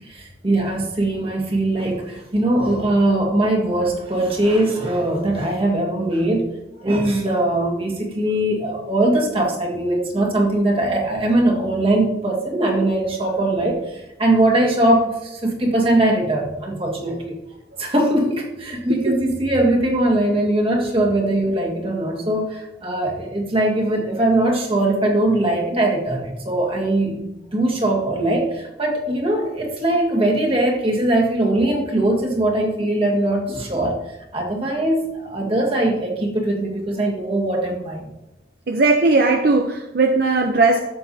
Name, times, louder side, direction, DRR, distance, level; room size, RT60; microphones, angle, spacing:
voice 1, 0.1-6.5 6.8-17.4 17.8-34.0 34.3-38.1, right 1 dB, 30° right, -1 dB, 1.8 m, -21 dB
voice 2, 38.7-40.8, right 3 dB, 60° right, 4 dB, 0.7 m, -17 dB
13.5 x 6.9 x 2.8 m, 0.92 s
head